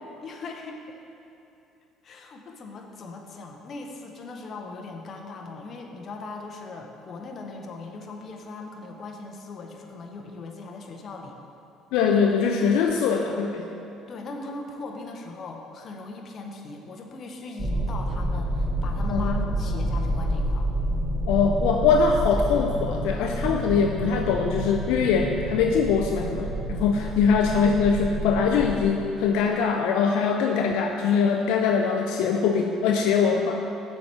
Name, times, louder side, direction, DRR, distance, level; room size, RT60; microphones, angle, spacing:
voice 1, 0.2-0.8 2.0-11.4 14.1-20.7, left 3 dB, 45° left, 2 dB, 0.8 m, -39 dB
voice 2, 11.9-13.7 19.1-19.5 21.3-33.5, left 5 dB, 80° left, 2 dB, 0.3 m, -22 dB
sound 1, 17.6-28.8, right 1 dB, 35° right, 1.0 m, -28 dB
7.0 x 4.4 x 4.6 m, 2.7 s
supercardioid pair, 85°, 0 cm